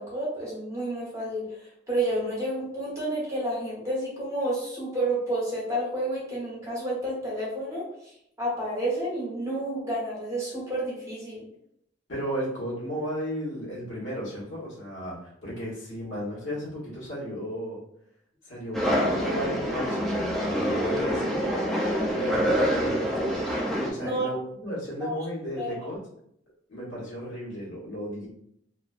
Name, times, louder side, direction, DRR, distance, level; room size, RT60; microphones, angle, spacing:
voice 1, 0.0-1.4 1.9-7.8 8.4-11.4 24.0-24.3 25.0-25.1 25.6-25.8, right 1 dB, 15° right, -6 dB, 1.0 m, -30 dB
voice 2, 12.1-17.8 18.4-20.1 20.6-21.4 22.1-23.3 23.9-26.0 26.7-28.3, equal, 85° left, -6 dB, 1.1 m, -34 dB
sound 1, 18.7-23.9, equal, ahead, 0.3 m, -26 dB
2.5 x 2.2 x 2.3 m, 0.72 s
head